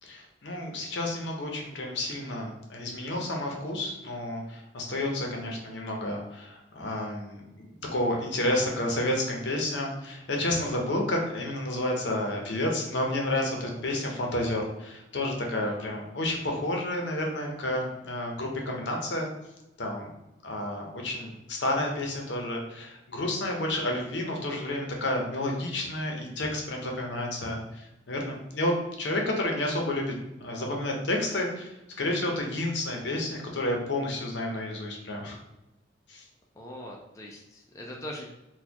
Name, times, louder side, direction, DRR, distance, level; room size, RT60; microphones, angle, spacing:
voice 1, 0.0-19.3 19.8-20.1 20.4-30.1 30.4-35.4 36.1-36.3, left 1 dB, 70° left, 1 dB, 0.7 m, -30 dB
voice 2, 15.4-15.8 36.6-38.3, left 1 dB, 15° left, -1 dB, 0.4 m, -42 dB
4.1 x 2.3 x 2.8 m, 0.94 s
head